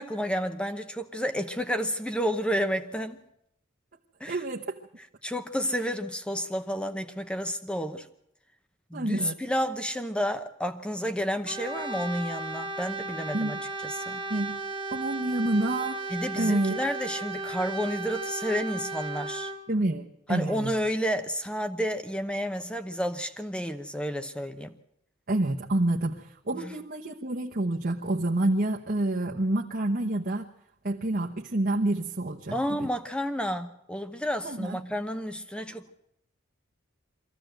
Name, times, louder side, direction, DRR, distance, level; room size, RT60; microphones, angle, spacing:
voice 1, 0.0-3.2 4.2-4.4 5.2-8.1 8.9-14.2 16.1-19.5 20.3-24.7 26.5-26.7 32.5-35.9, equal, 5° left, 0.9 m, -31 dB
voice 2, 4.3-4.8 8.9-9.3 13.3-13.6 14.3-14.6 14.9-16.0 16.4-16.8 19.7-20.7 25.3-30.5 30.8-32.9 34.4-34.8, right 1 dB, 45° right, 1.1 m, -28 dB
Brass instrument, 11.5-19.6, right 3 dB, 25° right, 1.2 m, -35 dB
23.5 x 15.0 x 7.9 m
head